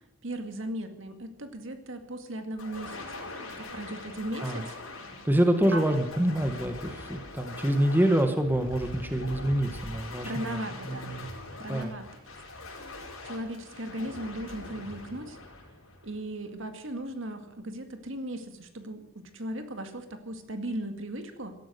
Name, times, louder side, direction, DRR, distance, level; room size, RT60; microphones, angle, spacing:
voice 1, 0.2-3.3 3.6-4.7 5.7-5.9 10.2-11.1 11.6-12.1 13.2-15.4 16.0-21.5, right 1 dB, 65° right, 7 dB, 2.1 m, -37 dB
sound 1, 2.6-16.5, left 2 dB, 85° left, 5.4 m, -42 dB
voice 2, 5.2-11.3 11.7-11.9, right 1 dB, 10° right, 6 dB, 1.2 m, -26 dB
16.5 x 12.5 x 6.7 m, 0.86 s
head